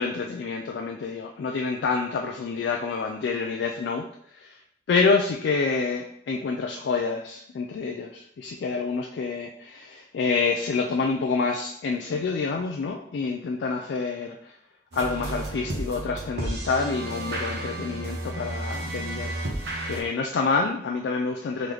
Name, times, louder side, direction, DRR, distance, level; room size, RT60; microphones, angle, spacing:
voice 1, 0.0-4.1 4.3-4.6 4.9-14.5 14.9-21.7, left 4 dB, 80° left, 2 dB, 0.3 m, -27 dB
sound 1, 14.9-20.0, right 1 dB, 70° right, 0.9 m, -32 dB
3.8 x 3.2 x 3.0 m, 0.68 s
head